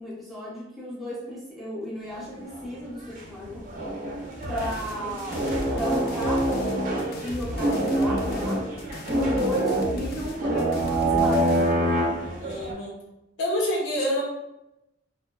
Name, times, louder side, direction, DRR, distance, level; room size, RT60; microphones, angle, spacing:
voice 1, 0.0-3.6 4.5-5.4 5.7-6.9 7.2-8.6 9.1-11.6, equal, ahead, -7 dB, 0.7 m, -33 dB
sound 1, 2.3-2.7 3.2-3.3 3.4-12.7, right 1 dB, 45° right, 0.5 m, -26 dB
sound 2, 4.4-11.7, left 1 dB, 55° left, 0.3 m, -37 dB
voice 2, 12.4-13.0 13.4-14.2, equal, 70° left, -2 dB, 0.7 m, -27 dB
2.7 x 2.2 x 2.2 m, 0.89 s
head